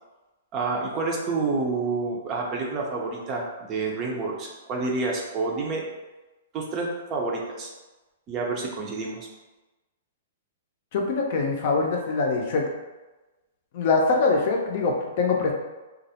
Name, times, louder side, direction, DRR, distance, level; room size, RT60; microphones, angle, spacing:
voice 1, 0.5-5.8 6.5-7.7 8.3-9.3, right 3 dB, 30° right, -1 dB, 0.5 m, -28 dB
voice 2, 10.9-12.6 13.7-15.5, left 3 dB, 55° left, 1 dB, 0.5 m, -23 dB
2.3 x 2.0 x 2.8 m, 1.1 s
hypercardioid pair, 140°, 0 cm